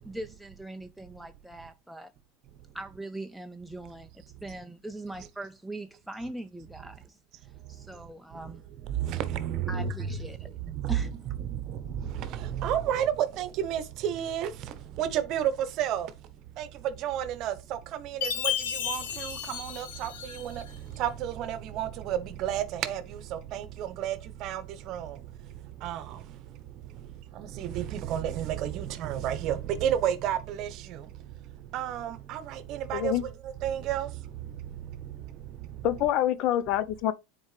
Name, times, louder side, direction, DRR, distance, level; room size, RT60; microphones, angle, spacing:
voice 1, 0.0-2.1 2.7-8.6 9.7-10.4 10.9-11.1, right 1 dB, ahead, 0.5 m, -41 dB
voice 2, 8.8-9.9 10.2-10.3 10.6-11.1 11.4-16.1 16.6-20.7 21.0-25.2 25.8-26.2 27.3-31.1 31.7-33.1 33.4-34.1, right 10 dB, 50° right, 1.0 m, -31 dB
Chime, 18.2-20.7, left 10 dB, 85° left, 1.1 m, -33 dB
voice 3, 32.9-33.2 35.8-37.1, left 11 dB, 55° left, 0.7 m, -26 dB
9.4 x 4.4 x 3.3 m
supercardioid pair, 120°, 0 cm